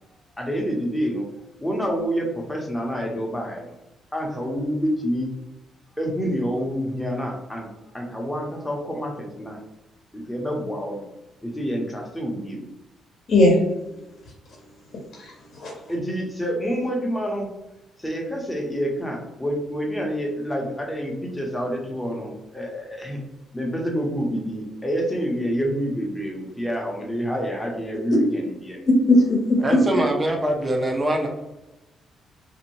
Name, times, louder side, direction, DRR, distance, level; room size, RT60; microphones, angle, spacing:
voice 1, 0.4-1.3 1.6-3.7 4.1-5.3 6.0-7.7 7.9-9.6 10.1-11.0 11.4-12.6 15.9-17.5 18.0-23.2 23.5-28.8 29.7-30.1, equal, 10° left, -1 dB, 0.7 m, -28 dB
voice 2, 15.2-15.7 29.1-29.6, left 1 dB, 55° left, -2 dB, 0.7 m, -18 dB
voice 3, 29.6-31.3, right 1 dB, 25° right, 2 dB, 0.6 m, -23 dB
2.6 x 2.0 x 3.0 m, 0.97 s
cardioid pair, 90°, 0 cm